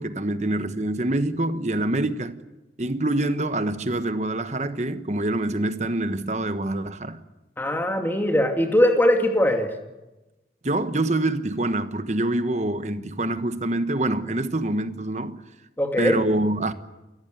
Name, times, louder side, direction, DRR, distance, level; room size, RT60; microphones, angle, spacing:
voice 1, 0.0-2.3 2.8-7.2 10.6-15.4 16.0-16.7, right 1 dB, 40° right, 1.2 m, -25 dB
voice 2, 7.6-9.7 15.8-16.2, left 1 dB, 10° left, 2.5 m, -21 dB
28.5 x 14.5 x 9.3 m
head